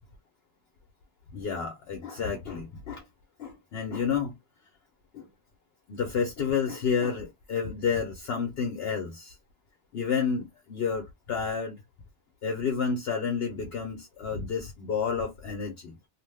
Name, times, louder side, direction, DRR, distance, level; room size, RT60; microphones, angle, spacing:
voice 1, 1.3-3.0 3.4-4.3 5.1-5.3 5.9-9.4 9.9-11.8 12.4-15.9, left 6 dB, 60° left, 0.8 m, -30 dB
2.6 x 2.1 x 3.3 m
omnidirectional pair, 1.3 m